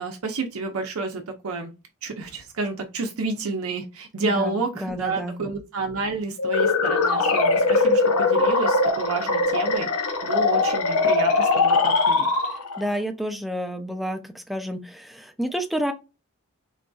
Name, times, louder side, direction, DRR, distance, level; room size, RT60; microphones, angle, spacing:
voice 1, 0.0-1.7 2.0-12.3, right 3 dB, 70° right, 4 dB, 0.6 m, -30 dB
voice 2, 4.2-4.5 4.8-5.3 12.8-15.9, equal, ahead, 6 dB, 0.4 m, -29 dB
sound 1, 6.4-12.9, left 3 dB, 85° left, 0.9 m, -21 dB
3.8 x 2.6 x 2.3 m, 0.28 s
head